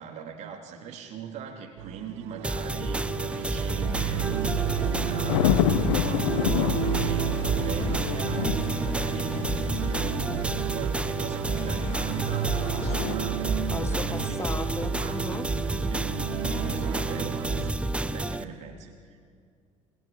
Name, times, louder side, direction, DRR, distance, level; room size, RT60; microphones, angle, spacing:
voice 1, 0.0-13.6 13.9-14.5 14.9-15.2 15.9-16.0 16.5-19.2, right 7 dB, 45° right, 3.5 m, -41 dB
sound 1, 1.8-17.7, right 16 dB, 65° right, 0.6 m, -33 dB
sound 2, 2.4-18.4, right 2 dB, 5° right, 1.1 m, -30 dB
sound 3, 4.2-10.5 11.5-13.1, left 14 dB, 65° left, 0.6 m, -30 dB
voice 2, 13.7-15.5, left 3 dB, 15° left, 1.5 m, -36 dB
26.0 x 26.0 x 7.2 m
figure-of-eight pair, 60°, 16 cm